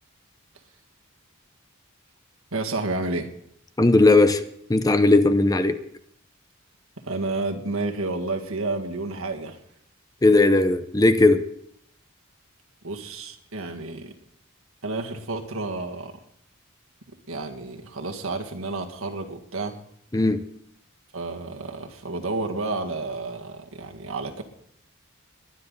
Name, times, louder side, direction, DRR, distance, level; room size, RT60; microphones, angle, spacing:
voice 1, 2.5-3.3 7.0-9.6 12.8-14.1 14.8-16.2 17.3-19.8 21.1-24.4, right 2 dB, 80° right, 2.0 m, -30 dB
voice 2, 3.8-4.4 4.7-5.8 10.2-11.4 20.1-20.4, left 2 dB, 15° left, 0.6 m, -17 dB
22.0 x 10.0 x 4.0 m
head